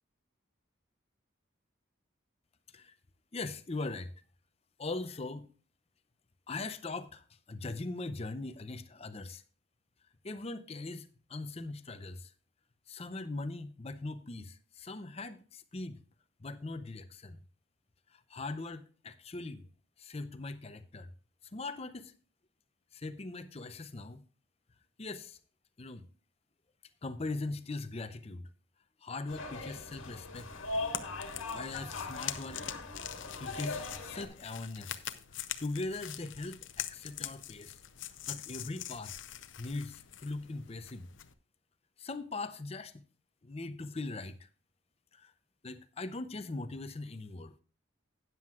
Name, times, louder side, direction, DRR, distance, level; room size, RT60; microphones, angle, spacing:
voice 1, 3.3-4.1 4.8-5.5 6.5-9.4 10.2-12.3 12.9-16.0 16.4-17.4 18.1-19.6 20.0-21.1 21.5-22.1 22.9-24.2 25.0-25.4 25.8-26.1 27.0-28.5 29.0-30.5 31.5-32.6 33.4-35.0 35.6-37.8 38.3-39.1 39.6-41.1 42.0-43.0 43.4-44.5 45.1-45.3 45.6-47.6, left 3 dB, 30° left, 0.6 m, -40 dB
sound 1, 29.3-34.3, left 3 dB, 85° left, 1.7 m, -40 dB
sound 2, 30.3-41.3, left 11 dB, 70° left, 0.7 m, -44 dB
13.0 x 9.3 x 2.4 m
head